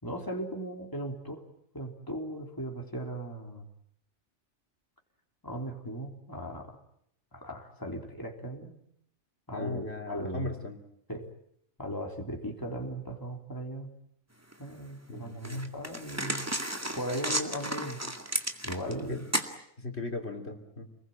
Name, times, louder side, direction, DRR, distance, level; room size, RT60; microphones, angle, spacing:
voice 1, 0.0-1.5 1.7-3.7 5.4-6.8 7.3-8.8 9.5-10.5 11.1-11.3 11.8-13.9 14.6-16.5 16.9-18.0 18.6-19.2, equal, 15° left, 2 dB, 3.6 m, -37 dB
voice 2, 9.5-10.8 15.1-15.7 19.1-19.2 19.8-20.9, left 2 dB, 65° left, 3 dB, 3.3 m, -37 dB
sound 1, 14.5-14.6 15.4-19.0 19.3-19.5, right 1 dB, 15° right, 2.1 m, -33 dB
28.5 x 21.0 x 9.2 m, 0.71 s
omnidirectional pair, 1.2 m